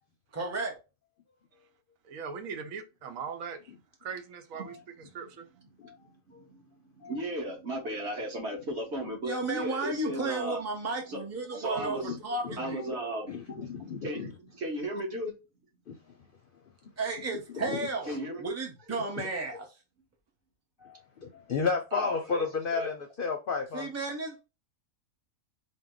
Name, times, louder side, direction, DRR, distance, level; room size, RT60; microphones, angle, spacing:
voice 1, 0.3-0.7 9.2-12.8 17.0-18.1 18.4-19.7 23.7-24.4, right 3 dB, 15° right, 0.7 m, -33 dB
voice 2, 2.1-3.6 4.0-4.7 5.1-5.5, right 6 dB, 85° right, 1.1 m, -39 dB
voice 3, 5.5-10.6 11.0-11.2 11.5-12.2 12.6-13.3 14.0-15.3 18.1-18.5 21.9-22.4 22.7-22.9, right 1 dB, 55° right, 1.6 m, -36 dB
voice 4, 12.1-12.7 13.3-14.3 15.9-16.2 17.5-17.8 18.1-18.2 19.2-19.3 20.8-23.9, left 5 dB, 55° left, 0.6 m, -33 dB
4.5 x 2.2 x 3.7 m
omnidirectional pair, 1.4 m